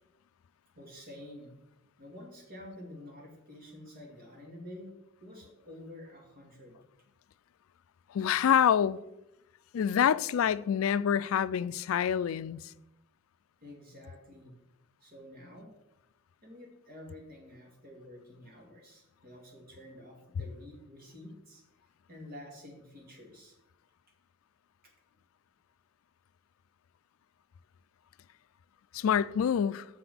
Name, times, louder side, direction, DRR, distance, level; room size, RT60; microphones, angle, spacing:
voice 1, 0.8-1.5 2.0-4.9 5.2-6.8 13.6-14.6 15.0-15.7 16.4-21.6 22.1-23.5, left 1 dB, 45° right, 2.4 m, -49 dB
voice 2, 8.1-9.0 9.7-12.7 28.9-29.9, left 8 dB, 80° left, 0.3 m, -26 dB
6.7 x 5.9 x 7.0 m
head